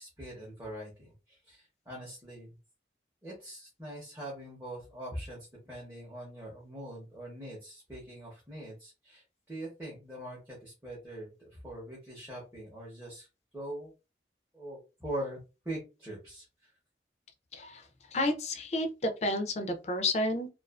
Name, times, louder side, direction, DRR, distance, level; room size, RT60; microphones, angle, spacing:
voice 1, 0.0-2.5 3.2-13.3 13.5-13.9 14.5-15.4 15.6-16.7, right 1 dB, 10° right, -5 dB, 0.7 m, -42 dB
voice 2, 17.5-20.5, left 1 dB, 40° left, 6 dB, 0.4 m, -31 dB
2.3 x 2.3 x 2.3 m, 0.29 s
head